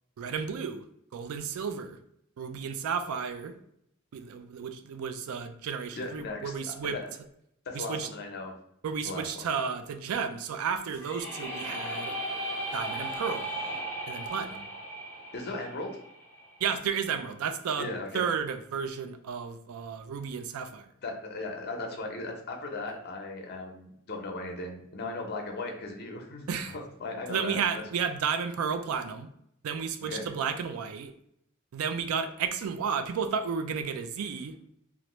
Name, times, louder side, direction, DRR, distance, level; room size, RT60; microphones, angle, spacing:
voice 1, 0.2-0.8 1.1-2.0 2.4-3.6 4.1-7.0 7.7-8.1 8.8-12.1 12.7-13.5 14.1-14.7 16.6-20.9 26.5-26.8 27.3-29.3 29.6-31.1 31.7-34.6, right 6 dB, 85° right, 9 dB, 0.4 m, -32 dB
voice 2, 6.0-6.5 6.8-7.1 7.7-8.6 9.0-9.5 15.3-16.0 17.8-18.3 21.0-27.6 30.0-30.2, left 2 dB, 50° left, 3 dB, 0.7 m, -37 dB
sound 1, 10.9-16.8, right 1 dB, 10° left, 0.8 m, -36 dB
3.0 x 2.5 x 3.0 m, 0.73 s
head